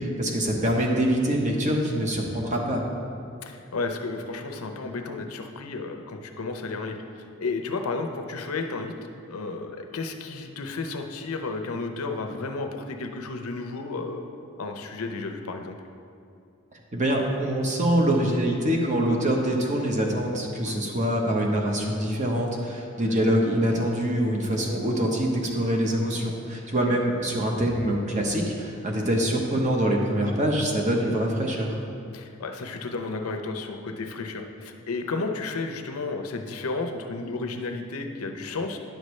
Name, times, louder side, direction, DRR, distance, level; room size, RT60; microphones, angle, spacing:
voice 1, 0.0-2.8 16.9-31.8, right 1 dB, 35° right, 0 dB, 0.9 m, -24 dB
voice 2, 3.4-8.9 9.3-14.2 14.6-15.8 20.7-20.9 23.0-23.2 32.1-38.8, left 3 dB, 85° left, 5 dB, 0.7 m, -32 dB
10.5 x 6.5 x 3.2 m, 2.5 s
head